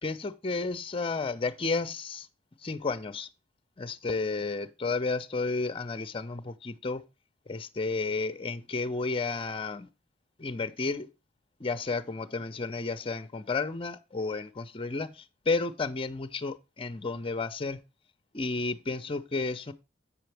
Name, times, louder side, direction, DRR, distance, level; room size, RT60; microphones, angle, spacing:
voice 1, 0.0-2.3 2.6-3.3 3.8-7.0 7.5-9.9 10.4-11.1 11.6-17.8 18.3-19.7, left 3 dB, 30° left, 0.6 m, -32 dB
8.4 x 6.9 x 3.4 m
head